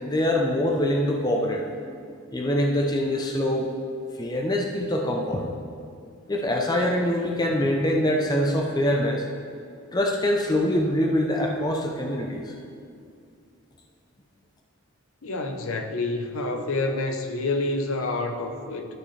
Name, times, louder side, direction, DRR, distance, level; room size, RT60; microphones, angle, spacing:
voice 1, 0.0-2.0 2.3-3.7 4.2-5.5 6.3-9.3 9.9-12.5, left 1 dB, 20° left, 1 dB, 0.5 m, -24 dB
voice 2, 15.2-18.9, left 2 dB, 70° left, 5 dB, 0.8 m, -28 dB
13.0 x 6.0 x 3.2 m, 2.4 s
head